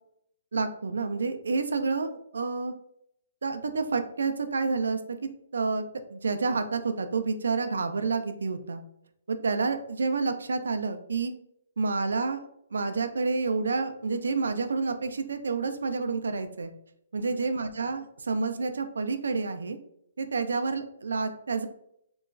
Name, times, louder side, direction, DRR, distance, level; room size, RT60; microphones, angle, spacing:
voice 1, 0.5-2.7 3.4-5.0 5.5-5.8 6.1-8.8 9.3-11.3 11.8-16.7 17.1-19.8 20.2-21.7, right 4 dB, 90° right, 8 dB, 0.3 m, -29 dB
2.9 x 2.3 x 2.4 m, 0.75 s
hypercardioid pair, 160°, 0 cm